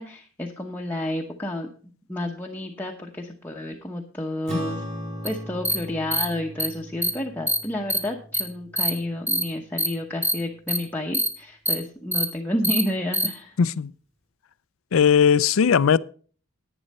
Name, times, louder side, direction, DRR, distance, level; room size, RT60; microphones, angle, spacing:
voice 1, 0.0-1.7 2.1-4.8 5.2-13.6, left 1 dB, 10° left, 0.9 m, -30 dB
Acoustic guitar / Strum, 4.5-9.2, equal, 35° right, 3.0 m, -37 dB
sound 1, 5.3-5.4 5.6-5.8 6.1-6.2 6.6-6.7 7.0-7.1 7.5-7.6 7.9-8.0 8.3-8.4 8.8-8.9 9.3-9.4 9.8-9.9 10.2-10.3 10.7-10.8 11.1-11.3 11.7-11.8 12.1-12.2 12.6-12.8 13.1-13.3, equal, 5° right, 1.8 m, -23 dB
voice 2, 13.6-13.9 14.9-16.0, left 7 dB, 70° left, 0.4 m, -18 dB
11.0 x 9.3 x 4.2 m
head